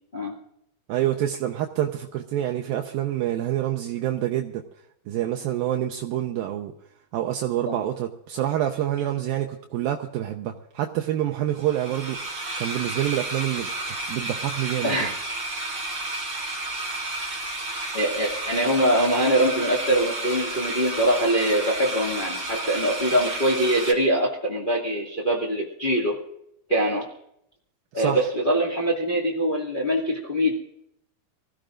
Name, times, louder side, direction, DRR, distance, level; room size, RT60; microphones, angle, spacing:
voice 1, 0.9-4.6 5.1-6.7 7.1-15.1 27.9-28.2, right 12 dB, 80° right, 3 dB, 2.1 m, -27 dB
sound 1, 11.6-23.9, right 2 dB, 25° right, 4.9 m, -31 dB
voice 2, 14.8-15.1 17.9-26.2 26.7-27.1 27.9-30.5, right 1 dB, 60° left, -2 dB, 0.5 m, -23 dB
25.5 x 15.5 x 2.5 m, 0.77 s
omnidirectional pair, 5.3 m